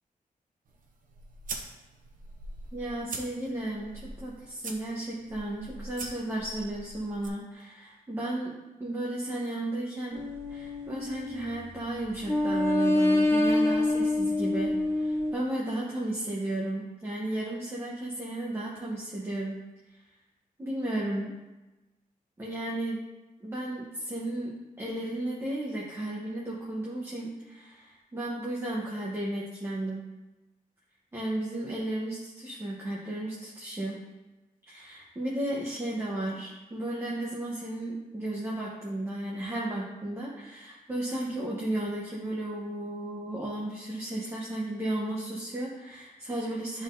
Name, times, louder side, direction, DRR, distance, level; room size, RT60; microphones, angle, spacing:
sound 1, 0.7-7.3, right 3 dB, 65° right, 0.8 m, -43 dB
voice 1, 2.7-8.5 8.8-10.2 10.5-19.6 20.6-21.3 22.4-23.0 23.4-30.0 31.1-34.0 34.7-46.8, right 1 dB, 15° right, -5 dB, 0.9 m, -34 dB
sound 2, 10.1-11.8 12.2-15.3, left 1 dB, 15° left, 0.8 m, -26 dB
11.0 x 3.7 x 2.6 m, 1.1 s
wide cardioid pair, 165°, 15 cm